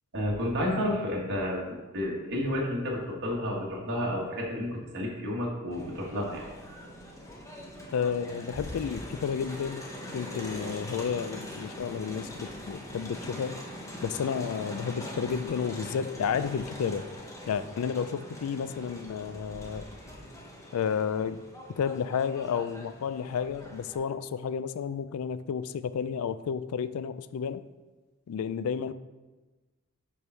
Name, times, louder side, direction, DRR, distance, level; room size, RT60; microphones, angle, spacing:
voice 1, 0.1-6.4, left 1 dB, 50° right, -4 dB, 1.6 m, -31 dB
Crowd, 5.7-24.0, left 1 dB, 15° left, 0.8 m, -42 dB
voice 2, 7.9-9.8 10.1-13.7 14.0-17.1 17.5-19.9 20.7-21.4 21.7-27.6 28.3-28.9, left 7 dB, 75° left, 14 dB, 0.3 m, -31 dB
5.1 x 4.7 x 5.5 m, 1.2 s
head